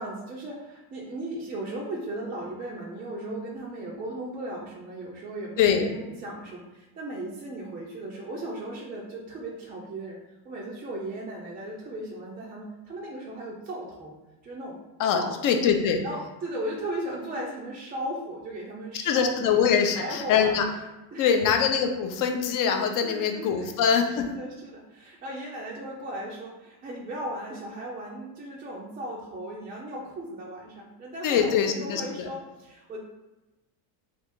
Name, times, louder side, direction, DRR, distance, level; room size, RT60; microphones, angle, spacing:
voice 1, 0.0-10.2 10.4-14.1 14.4-14.8 15.1-15.3 16.0-19.6 19.8-20.5 21.1-21.3 23.0-23.7 24.3-33.0, right 1 dB, 20° right, -4 dB, 0.4 m, -36 dB
voice 2, 5.6-5.9 15.0-16.0 19.0-20.7 21.2-24.3 31.2-32.3, left 7 dB, 45° left, 4 dB, 0.6 m, -23 dB
3.4 x 2.5 x 4.4 m, 1.1 s
cardioid pair, 145°, 45 cm